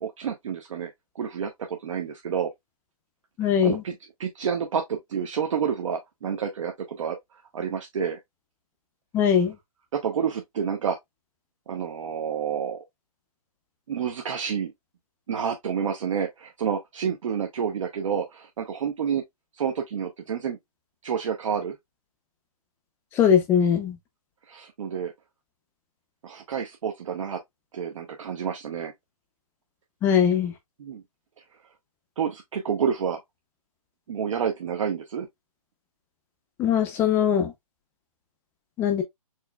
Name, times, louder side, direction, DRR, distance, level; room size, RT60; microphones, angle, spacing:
voice 1, 0.0-2.5 3.4-7.2 7.5-8.2 9.9-11.0 11.7-12.8 13.9-14.7 15.3-19.2 19.6-20.6 21.0-21.8 24.5-25.1 26.2-27.4 27.7-28.9 30.8-31.0 32.2-33.2 34.1-35.3, right 7 dB, 55° right, 0.9 m, -29 dB
voice 2, 3.4-3.8 9.1-9.6 23.1-24.0 30.0-30.5 36.6-37.5 38.8-39.0, left 8 dB, 10° left, 0.6 m, -21 dB
4.6 x 3.0 x 2.2 m
hypercardioid pair, 155°, 20 cm